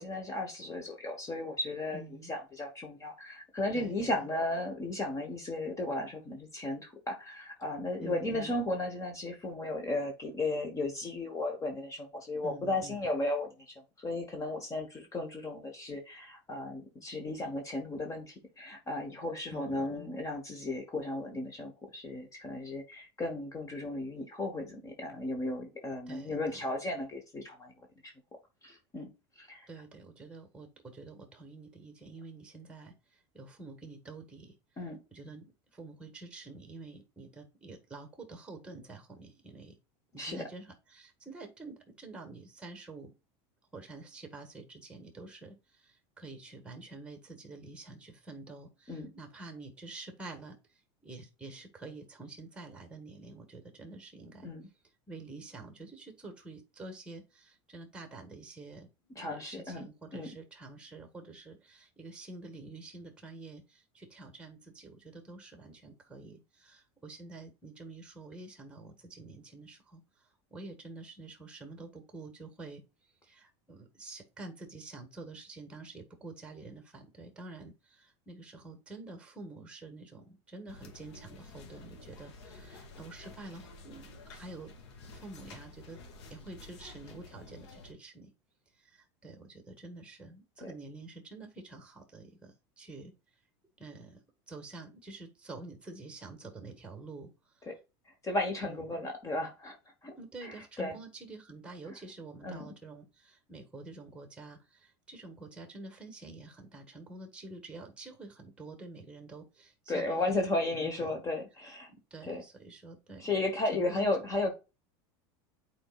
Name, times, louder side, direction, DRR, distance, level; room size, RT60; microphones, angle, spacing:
voice 1, 0.0-27.7 28.0-28.1 28.6-29.1 29.4-29.7 34.8-35.0 40.2-40.4 48.9-49.1 54.4-54.7 59.2-59.9 60.1-60.3 90.6-90.7 97.7-97.8 98.0-100.1 100.4-101.0 101.9-102.0 102.4-102.6 109.9-111.9 112.3-112.4 113.2-114.5, left 2 dB, 20° left, 3 dB, 1.3 m, -35 dB
voice 2, 1.9-2.3 3.7-4.2 8.0-8.5 12.4-13.1 19.5-20.1 26.1-26.6 29.7-34.5 35.1-39.7 40.1-43.1 43.7-54.5 55.1-58.9 59.1-72.8 73.2-84.7 85.1-86.0 86.3-88.3 88.7-93.1 93.8-94.2 94.5-97.7 98.6-99.1 100.2-110.2 110.7-111.2 111.9-113.3 113.7-114.0, right 3 dB, 5° right, 5 dB, 1.7 m, -48 dB
sound 1, 80.7-87.9, left 3 dB, 85° left, 2.0 m, -51 dB
8.7 x 4.4 x 2.4 m, 0.28 s
supercardioid pair, 125°, 14 cm